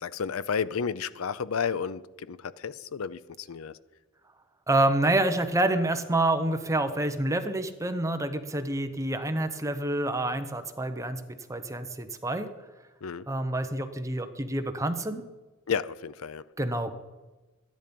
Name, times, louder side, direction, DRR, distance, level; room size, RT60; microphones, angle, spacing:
voice 1, 0.0-3.8 13.0-13.3 15.7-16.5, left 6 dB, 85° left, 0.5 m, -32 dB
voice 2, 4.7-11.2 11.5-12.5 13.3-15.2 16.6-16.9, right 1 dB, 15° right, 0.8 m, -27 dB
12.5 x 10.5 x 5.2 m
head